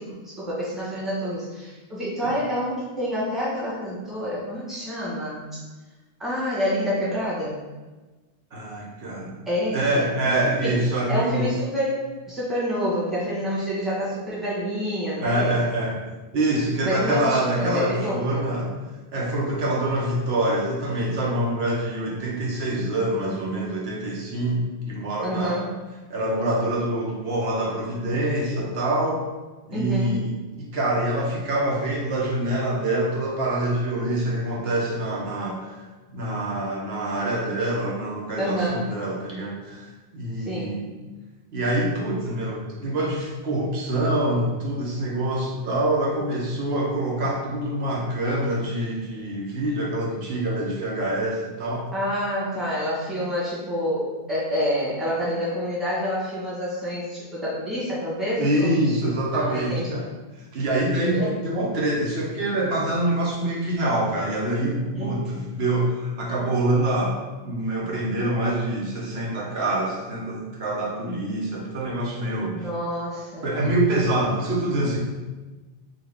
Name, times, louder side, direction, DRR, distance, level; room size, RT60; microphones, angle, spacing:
voice 1, 0.0-5.6 6.2-7.6 9.5-10.8 11.1-15.7 16.8-18.5 25.2-25.8 29.7-30.4 38.4-39.0 40.4-40.8 51.9-58.9 59.3-60.0 61.0-61.4 64.8-65.2 72.5-73.5, equal, ahead, -8 dB, 1.0 m, -28 dB
voice 2, 8.5-9.3 9.7-11.5 15.2-16.0 16.3-18.7 19.1-25.6 26.1-29.2 29.7-39.9 40.1-40.9 41.5-51.9 58.4-60.1 60.5-72.7 73.4-75.0, right 1 dB, 85° right, -3 dB, 1.1 m, -25 dB
3.8 x 2.4 x 3.3 m, 1.2 s
omnidirectional pair, 1.0 m